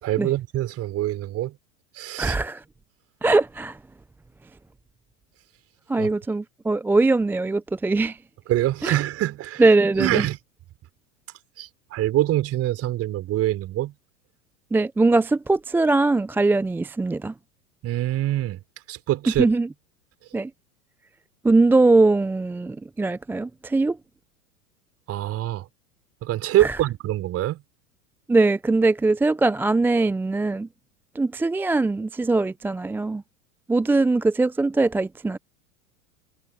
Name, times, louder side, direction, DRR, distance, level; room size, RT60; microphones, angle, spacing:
voice 1, 0.0-1.5 2.0-2.3 6.0-6.1 8.5-9.6 10.0-10.4 11.6-13.9 17.8-18.6 18.9-19.4 25.1-25.6 26.2-27.6, right 14 dB, 35° right, 5.1 m, -24 dB
voice 2, 2.2-2.6 3.2-3.8 5.9-8.2 8.8-9.0 9.6-10.3 14.7-17.3 19.4-19.7 20.3-20.5 21.4-24.0 26.6-26.8 28.3-30.7 31.2-33.2 33.7-35.4, right 3 dB, 5° right, 0.6 m, -21 dB
figure-of-eight pair, 90°, 44 cm